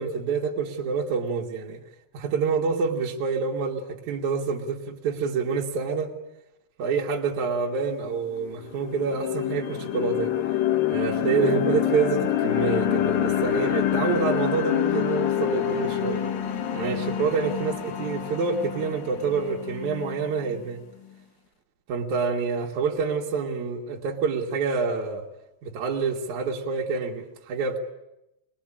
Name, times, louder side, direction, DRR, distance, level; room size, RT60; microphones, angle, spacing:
voice 1, 0.0-1.8 2.1-6.1 6.8-10.4 10.9-16.2 16.7-20.8 21.9-25.3 25.6-27.8, right 5 dB, 55° right, 2.4 m, -27 dB
sound 1, 7.9-8.0 8.4-20.5, left 11 dB, 65° left, 2.7 m, -27 dB
22.0 x 21.5 x 8.7 m
omnidirectional pair, 5.1 m